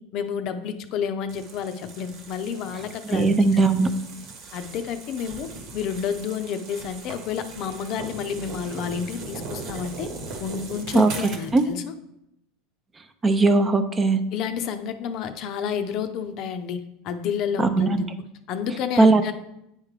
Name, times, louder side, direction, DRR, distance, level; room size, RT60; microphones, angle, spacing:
voice 1, 0.1-3.6 4.5-10.1 10.4-11.9 14.3-16.8 17.0-18.1 18.5-19.3, left 7 dB, 55° left, 9 dB, 0.5 m, -30 dB
sound 1, 1.3-11.7, right 3 dB, 60° right, 1.2 m, -39 dB
voice 2, 3.1-3.9 10.9-11.6 13.2-14.2 17.6-18.0 19.0-19.3, right 3 dB, 20° right, 9 dB, 0.4 m, -19 dB
8.8 x 3.6 x 3.3 m, 0.82 s
supercardioid pair, 120°, 0 cm